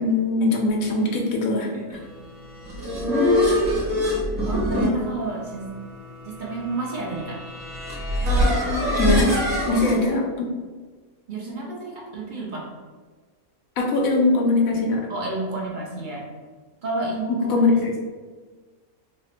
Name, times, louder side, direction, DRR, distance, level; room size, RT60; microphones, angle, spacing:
voice 1, 0.0-1.7 9.0-9.3 9.7-10.5 13.8-15.0 17.5-18.0, left 2 dB, 80° left, 0 dB, 1.0 m, -21 dB
voice 2, 1.6-2.0 4.4-5.7 6.2-7.4 9.7-10.2 11.3-12.7 15.1-16.3 16.8-17.7, right 3 dB, 55° right, -3 dB, 0.5 m, -31 dB
sound 1, 2.4-9.9, left 1 dB, 30° right, 1.0 m, -24 dB
3.2 x 2.0 x 4.2 m, 1.4 s
omnidirectional pair, 1.5 m